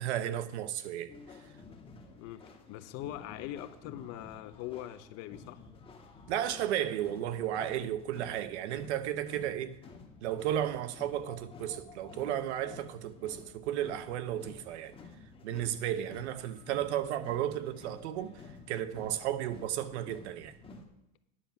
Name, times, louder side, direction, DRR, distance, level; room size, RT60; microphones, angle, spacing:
voice 1, 0.0-1.4 6.3-9.8 10.2-14.9 15.4-18.4 18.7-20.5, right 11 dB, 90° right, 0.9 m, -34 dB
sound 1, 1.1-20.8, left 4 dB, 15° left, 1.3 m, -52 dB
voice 2, 2.2-5.6, left 13 dB, 50° left, 0.7 m, -42 dB
9.9 x 7.1 x 5.8 m
supercardioid pair, 140°, 33 cm